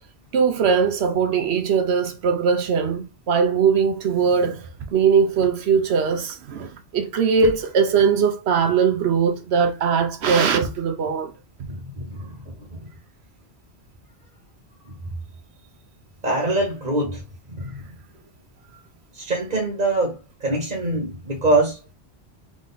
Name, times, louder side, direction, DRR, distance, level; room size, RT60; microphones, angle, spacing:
voice 1, 0.3-4.7 4.9-11.3, right 6 dB, 75° right, 1.1 m, -20 dB
voice 2, 11.7-12.7 14.8-14.9 16.2-17.2 17.5-17.8 19.1-21.8, right 2 dB, 50° right, 1.3 m, -24 dB
3.7 x 3.2 x 3.9 m
omnidirectional pair, 1.1 m